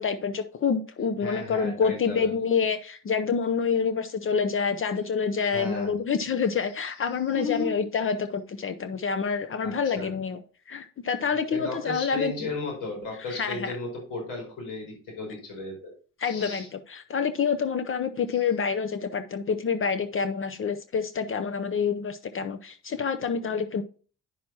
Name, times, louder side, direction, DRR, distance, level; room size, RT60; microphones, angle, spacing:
voice 1, 0.0-10.4 10.7-12.3 13.3-13.7 16.2-23.8, left 6 dB, 45° left, 10 dB, 0.7 m, -27 dB
voice 2, 1.2-2.3 5.5-5.9 7.3-7.8 9.6-10.1 11.5-15.9 16.2-16.7 18.3-18.4, left 3 dB, 85° left, -1 dB, 4.4 m, -35 dB
9.9 x 6.0 x 2.9 m, 0.39 s
cardioid pair, 90°, 30 cm